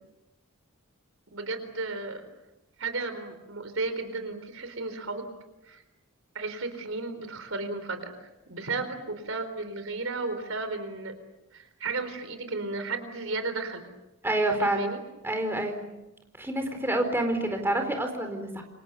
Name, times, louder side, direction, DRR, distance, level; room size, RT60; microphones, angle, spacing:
voice 1, 1.3-2.2 2.8-5.2 5.7-5.8 6.3-11.1 11.5-13.9 14.6-15.0, right 3 dB, 75° right, 9 dB, 4.2 m, -34 dB
voice 2, 14.2-14.9 15.2-15.8 16.4-18.6, right 1 dB, 10° right, 4 dB, 4.3 m, -27 dB
29.0 x 26.0 x 6.9 m, 0.97 s
head